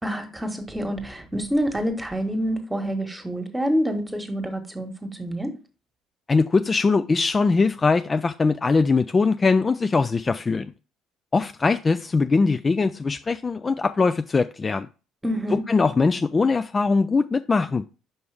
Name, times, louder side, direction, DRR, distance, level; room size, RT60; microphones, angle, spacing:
voice 1, 0.0-5.5 15.2-15.6, equal, 10° right, 1.5 m, -27 dB
voice 2, 6.3-10.7 11.3-14.9 15.5-17.8, left 4 dB, 30° left, 0.3 m, -21 dB
5.6 x 5.3 x 3.4 m
figure-of-eight pair, 55°, 0 cm